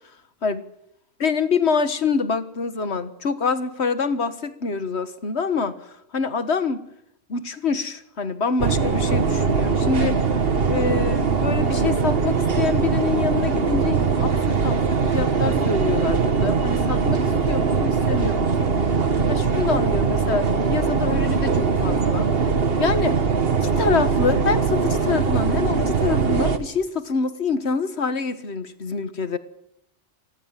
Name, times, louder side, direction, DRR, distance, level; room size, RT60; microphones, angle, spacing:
voice 1, 1.2-6.8 7.3-10.3 10.7-18.7 19.3-22.3 22.8-23.2 23.5-29.4, left 5 dB, 75° left, 12 dB, 1.8 m, -26 dB
sound 1, 8.6-26.6, right 5 dB, 60° right, 1.7 m, -21 dB
27.0 x 19.5 x 7.5 m, 0.77 s
omnidirectional pair, 1.1 m